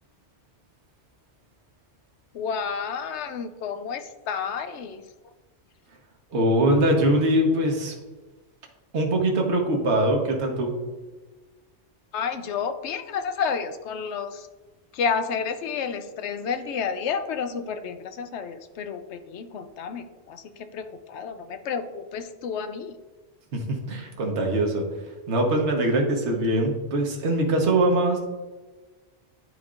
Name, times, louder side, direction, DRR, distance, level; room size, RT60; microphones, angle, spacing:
voice 1, 2.3-5.0 12.1-14.5 14.9-23.0, left 6 dB, 70° left, 9 dB, 0.9 m, -30 dB
voice 2, 6.3-7.9 8.9-10.7 23.5-24.8 25.3-28.2, right 1 dB, 65° right, 2 dB, 1.4 m, -22 dB
11.0 x 4.4 x 2.5 m, 1.2 s
omnidirectional pair, 1.2 m